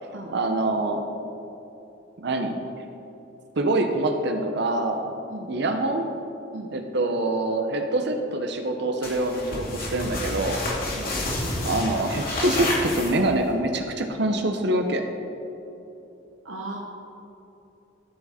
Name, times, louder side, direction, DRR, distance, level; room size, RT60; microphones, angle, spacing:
voice 1, 0.3-1.0 2.2-2.5 3.6-5.1 5.5-6.1 6.7-10.6 11.6-15.0, right 2 dB, 60° right, 5 dB, 0.8 m, -25 dB
sound 1, 9.0-13.5, left 1 dB, 50° left, 2.5 m, -29 dB
voice 2, 16.4-16.8, right 2 dB, 85° right, 0 dB, 1.0 m, -36 dB
13.5 x 7.3 x 4.2 m, 3.0 s
head